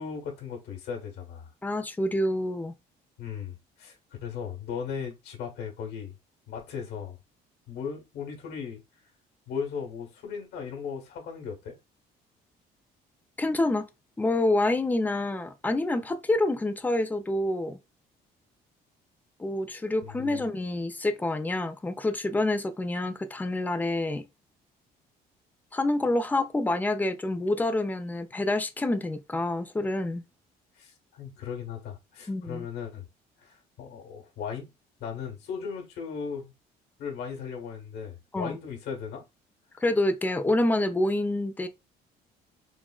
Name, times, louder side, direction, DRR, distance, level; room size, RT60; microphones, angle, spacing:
voice 1, 0.0-1.5 3.2-6.1 6.5-7.2 7.7-8.8 9.5-11.7 20.0-20.4 30.8-33.1 33.4-34.7 35.0-36.5 37.0-39.2, left 6 dB, 75° left, 1.1 m, -37 dB
voice 2, 1.6-2.7 13.4-13.9 14.2-17.8 19.4-24.2 25.7-30.2 32.3-32.7 38.3-38.6 39.8-41.7, left 2 dB, 10° left, 0.3 m, -27 dB
3.6 x 2.0 x 2.2 m
cardioid pair, 110°, 17 cm